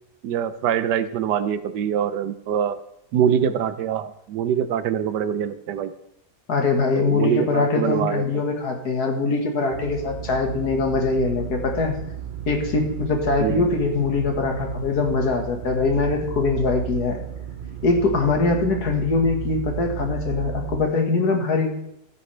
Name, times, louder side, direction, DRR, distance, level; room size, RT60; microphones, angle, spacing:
voice 1, 0.2-2.8 3.1-5.9 6.9-8.2 13.4-13.7, right 9 dB, 90° right, 13 dB, 1.4 m, -24 dB
voice 2, 6.5-12.0 12.5-17.2 17.8-21.8, left 3 dB, 70° left, 3 dB, 2.1 m, -22 dB
sound 1, 9.7-20.8, right 10 dB, 55° right, 0.5 m, -33 dB
13.5 x 8.9 x 3.3 m, 0.77 s
omnidirectional pair, 1.8 m